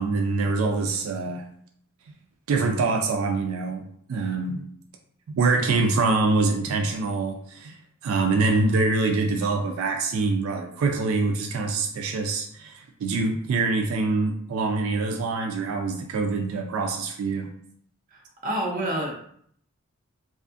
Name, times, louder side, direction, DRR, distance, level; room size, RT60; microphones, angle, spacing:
voice 1, 0.0-1.5 2.5-4.7 5.3-7.8 8.0-17.5, right 3 dB, 85° right, 4 dB, 0.3 m, -25 dB
voice 2, 18.1-19.1, right 1 dB, 40° right, -2 dB, 0.6 m, -28 dB
2.4 x 2.4 x 2.4 m, 0.65 s
head